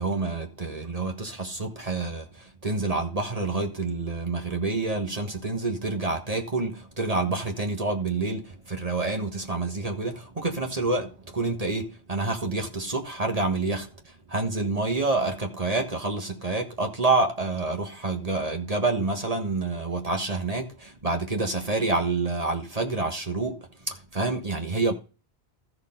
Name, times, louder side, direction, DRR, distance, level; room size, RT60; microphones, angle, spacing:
voice 1, 0.0-24.9, right 3 dB, 35° right, 1.5 m, -28 dB
14.5 x 6.5 x 3.8 m
omnidirectional pair, 1.1 m